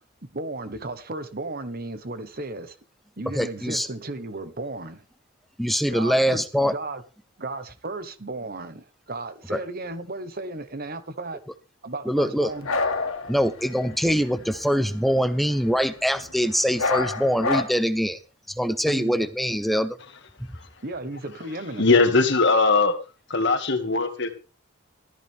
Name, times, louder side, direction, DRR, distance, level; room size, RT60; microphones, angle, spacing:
voice 1, 0.2-2.8 3.2-5.0 5.9-7.0 7.4-11.4 11.8-12.7 18.9-19.3 20.8-21.8, right 2 dB, 45° right, 1.3 m, -34 dB
voice 2, 3.4-3.9 5.6-6.7 9.5-9.6 12.1-12.5 13.3-18.2 18.6-20.0, equal, ahead, 0.7 m, -23 dB
sound 1, 12.5-16.5 16.7-17.6, left 3 dB, 85° left, 2.1 m, -29 dB
voice 3, 21.8-23.0 23.3-24.4, left 3 dB, 55° left, 2.0 m, -20 dB
13.5 x 13.5 x 3.5 m
head